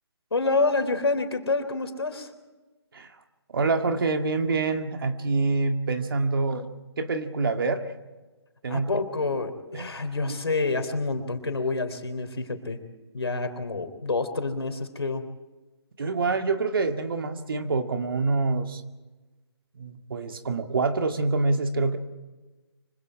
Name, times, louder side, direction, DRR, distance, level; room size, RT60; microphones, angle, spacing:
voice 1, 0.3-2.3 8.7-12.8 13.1-15.3, left 3 dB, 70° left, 7 dB, 3.4 m, -28 dB
voice 2, 3.5-7.8 8.6-8.9 9.7-9.9 10.2-10.4 16.0-18.8 19.8-22.0, right 3 dB, 55° right, 6 dB, 2.1 m, -26 dB
25.5 x 25.0 x 4.8 m, 1.2 s
figure-of-eight pair, 140°, 14 cm